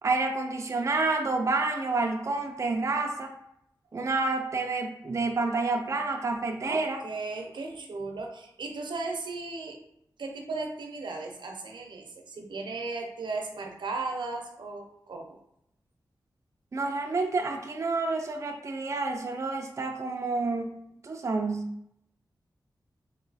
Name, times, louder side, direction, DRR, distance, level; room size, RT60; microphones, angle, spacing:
voice 1, 0.0-3.3 3.9-7.0 16.7-20.8 21.0-21.7, right 3 dB, 40° right, 3 dB, 0.4 m, -29 dB
voice 2, 6.6-9.8 10.2-15.3, right 3 dB, 90° right, 2 dB, 0.6 m, -36 dB
3.1 x 2.7 x 4.0 m, 0.77 s
wide cardioid pair, 110°, 8 cm